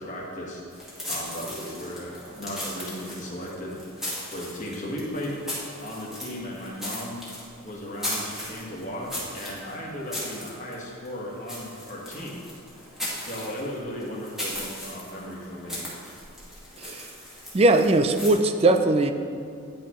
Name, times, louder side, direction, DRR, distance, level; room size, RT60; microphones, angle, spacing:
voice 1, 0.0-5.4 5.8-7.3 7.6-12.4 13.2-15.9, equal, 35° left, -3 dB, 1.4 m, -36 dB
sound 1, 0.7-18.3, left 1 dB, ahead, 1.8 m, -37 dB
voice 2, 16.8-17.1 17.5-19.1, right 2 dB, 30° right, 8 dB, 0.4 m, -20 dB
10.0 x 6.3 x 3.1 m, 2.3 s
head